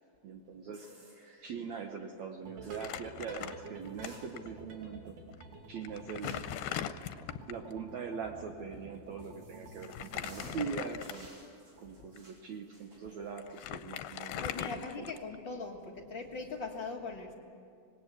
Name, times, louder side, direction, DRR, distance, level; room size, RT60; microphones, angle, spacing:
voice 1, 0.2-0.9 1.4-5.2 5.7-6.5 7.5-11.3 11.8-15.1, right 6 dB, 65° right, 4 dB, 1.9 m, -42 dB
sound 1, 0.7-1.6 2.6-2.9 3.8-4.7 5.1-5.2 6.2-6.6 8.7-14.8 15.2-15.3 16.2-16.5, right 2 dB, 30° right, 5.0 m, -56 dB
sound 2, 2.4-10.6, right 3 dB, 85° right, 4.5 m, -50 dB
Crumpling crinkling, 2.7-4.1 4.4-4.5 5.3-5.4 5.8-7.7 9.8-11.4 12.0-12.2 13.1-13.2 13.4-15.5, left 11 dB, 80° left, 2.5 m, -40 dB
voice 2, 14.4-17.3, left 4 dB, 50° left, 1 dB, 1.4 m, -40 dB
25.5 x 20.0 x 8.3 m, 2.5 s
omnidirectional pair, 4.3 m